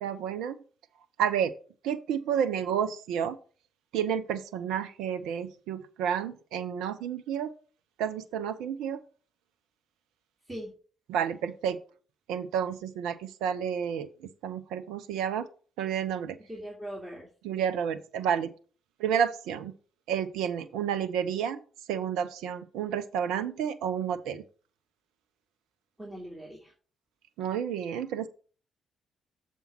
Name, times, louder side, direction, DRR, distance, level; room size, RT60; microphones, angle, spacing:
voice 1, 0.0-0.6 1.2-1.5 1.8-3.4 3.9-7.5 8.0-9.0 11.1-11.8 12.3-15.5 15.8-16.4 17.4-18.5 19.0-19.7 20.1-21.6 21.9-24.4 27.4-28.3, right 8 dB, 65° right, 10 dB, 0.5 m, -30 dB
voice 2, 16.5-17.3 26.0-26.7, equal, 15° right, -3 dB, 2.3 m, -40 dB
6.9 x 4.3 x 5.8 m, 0.39 s
figure-of-eight pair, 40°, 0 cm